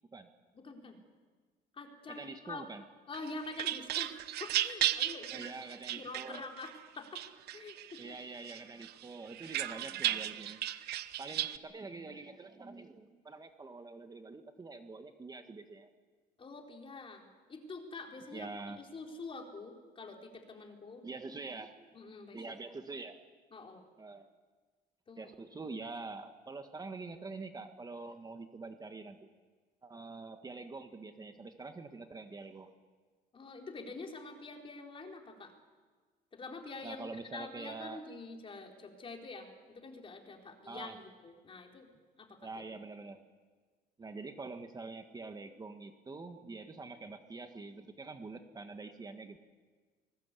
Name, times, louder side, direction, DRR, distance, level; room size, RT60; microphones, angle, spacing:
voice 1, 0.5-1.0 1.7-2.6 3.1-5.5 6.0-7.2 7.5-8.2 16.4-21.1 21.9-22.4 23.5-23.9 25.1-25.3 33.3-35.5 36.3-41.9 42.2-42.8, left 3 dB, 30° left, 2 dB, 4.2 m, -46 dB
voice 2, 2.1-2.8 5.3-6.4 8.0-10.7 11.2-15.9 18.3-18.8 21.0-21.9 22.3-23.2 24.0-24.3 25.2-29.3 29.8-32.7 36.8-38.0 40.7-41.0 42.4-43.2 44.0-49.4, right 3 dB, 25° right, 7 dB, 1.6 m, -45 dB
sound 1, 3.1-6.7 7.2-8.1 8.5-11.6, right 13 dB, 70° right, 1.0 m, -35 dB
24.5 x 21.0 x 8.4 m, 1.4 s
cardioid pair, 110°, 17 cm